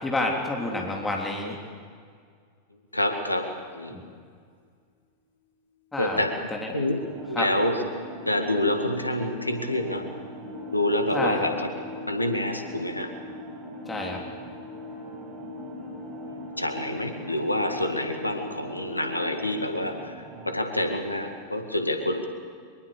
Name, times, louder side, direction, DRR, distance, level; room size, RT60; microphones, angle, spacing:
voice 1, 0.0-1.6 3.9-4.0 5.9-6.2 6.5-6.8 7.4-7.5 11.1-11.5 13.9-14.2, left 2 dB, 10° left, 0 dB, 3.4 m, -29 dB
voice 2, 2.9-4.0 6.0-6.4 6.7-7.0 7.3-7.8 8.3-10.1 10.7-11.7 12.1-13.1 16.6-22.2, left 1 dB, 85° left, 6 dB, 2.0 m, -27 dB
sound 1, 5.8-5.9 6.1-19.3, left 4 dB, 60° left, 3.5 m, -43 dB
sound 2, 7.0-20.6, right 2 dB, 30° right, 5.4 m, -42 dB
23.5 x 22.5 x 7.0 m, 2.1 s
figure-of-eight pair, 90°, 0 cm